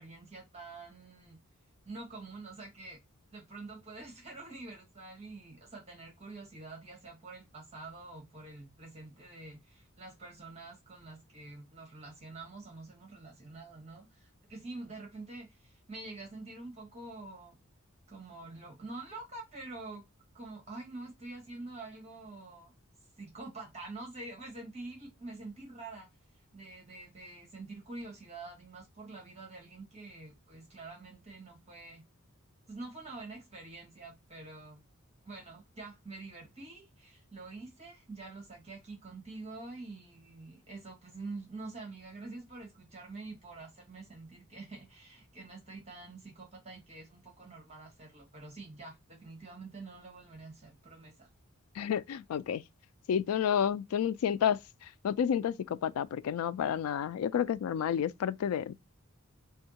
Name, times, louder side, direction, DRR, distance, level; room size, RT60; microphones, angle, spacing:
voice 1, 0.0-1.4 1.8-3.0 3.3-17.6 18.1-20.1 20.3-22.7 23.2-26.1 26.5-32.0 32.7-34.8 35.2-51.3, right 3 dB, 30° right, 1.3 m, -46 dB
voice 2, 51.8-52.6 53.1-54.6 55.0-58.7, left 8 dB, 85° left, 0.3 m, -30 dB
3.5 x 2.3 x 2.8 m
head